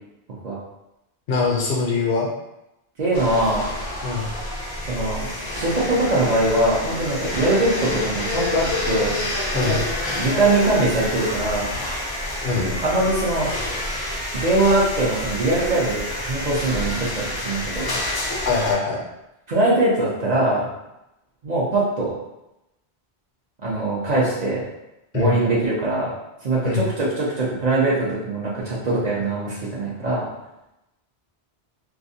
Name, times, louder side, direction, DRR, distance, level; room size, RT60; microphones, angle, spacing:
voice 1, 1.3-2.3 4.0-4.3 9.5-9.8 12.4-12.8 18.4-19.0 25.1-25.3 26.6-26.9, left 4 dB, 70° left, -2 dB, 0.7 m, -22 dB
voice 2, 3.0-3.6 4.8-5.3 5.5-9.1 9.5-9.8 10.2-11.7 12.8-13.5 14.3-17.9 19.5-20.7 21.4-22.1 23.6-24.7 25.1-26.1 26.4-30.3, right 2 dB, 50° right, -7 dB, 0.6 m, -22 dB
sound 1, 3.1-18.7, left 1 dB, 40° left, 0.3 m, -28 dB
2.4 x 2.0 x 2.6 m, 0.90 s
omnidirectional pair, 1.1 m